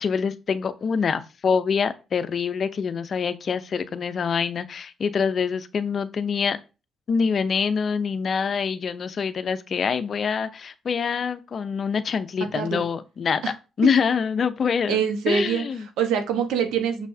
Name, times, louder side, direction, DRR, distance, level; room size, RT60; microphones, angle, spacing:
voice 1, 0.0-6.6 7.1-15.0 15.3-15.9, left 6 dB, 50° left, 0.7 m, -25 dB
voice 2, 12.4-12.8 13.4-13.5 14.9-15.7 16.0-17.1, right 7 dB, 90° right, 1.2 m, -24 dB
6.4 x 6.1 x 2.8 m
cardioid pair, 90°, 0 cm